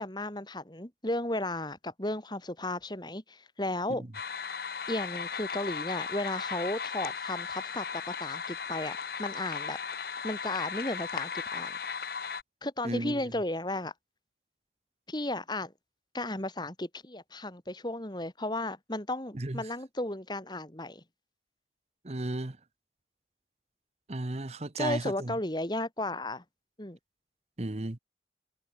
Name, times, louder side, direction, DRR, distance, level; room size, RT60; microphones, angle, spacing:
voice 1, 0.0-4.0 4.9-9.8 10.2-11.8 12.6-13.9 15.1-15.7 16.1-21.0 24.8-26.4 26.8-27.0, left 1 dB, 25° left, 3.0 m, -34 dB
sound 1, 4.1-12.4, left 6 dB, 60° left, 1.4 m, -36 dB
voice 2, 12.8-13.2 19.3-19.6 22.0-22.6 24.1-25.4 27.6-28.0, right 2 dB, 35° right, 1.0 m, -34 dB
head